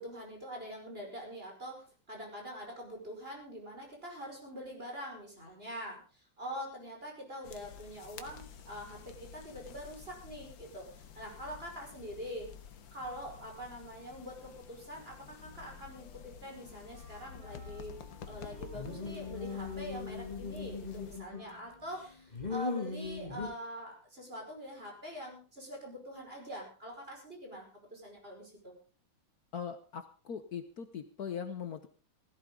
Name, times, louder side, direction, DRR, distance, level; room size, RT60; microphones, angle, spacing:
voice 1, 0.0-12.5 12.9-18.0 18.3-28.7, equal, 30° right, 0 dB, 5.5 m, -44 dB
sound 1, 7.4-21.2, left 7 dB, 85° left, 2.0 m, -50 dB
Wind instrument woodwind instrument, 14.9-22.3, right 2 dB, 80° right, 7.3 m, -61 dB
sound 2, 18.7-21.6 21.9-23.5, left 4 dB, 20° left, 2.8 m, -39 dB
voice 2, 29.5-31.9, left 7 dB, 55° left, 8 dB, 1.4 m, -40 dB
16.5 x 16.0 x 3.8 m, 0.37 s
omnidirectional pair, 2.1 m